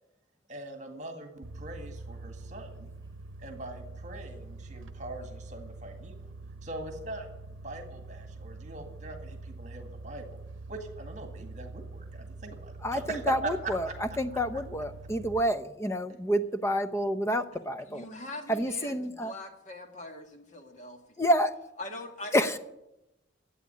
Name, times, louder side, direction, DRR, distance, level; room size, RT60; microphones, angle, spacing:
voice 1, 0.5-2.9 3.4-6.3 6.6-7.3 7.6-10.3 10.7-13.2 13.9-14.0, right 1 dB, 35° right, 5 dB, 1.9 m, -43 dB
sound 1, 1.4-15.4, right 3 dB, 90° right, 0.7 m, -44 dB
voice 2, 12.8-18.0 18.5-19.3 21.2-21.6 22.3-22.6, equal, 15° left, 11 dB, 0.7 m, -28 dB
voice 3, 17.9-18.9 19.2-21.2 21.8-22.5, left 2 dB, 40° left, 5 dB, 1.7 m, -42 dB
12.5 x 8.5 x 9.9 m, 0.91 s
head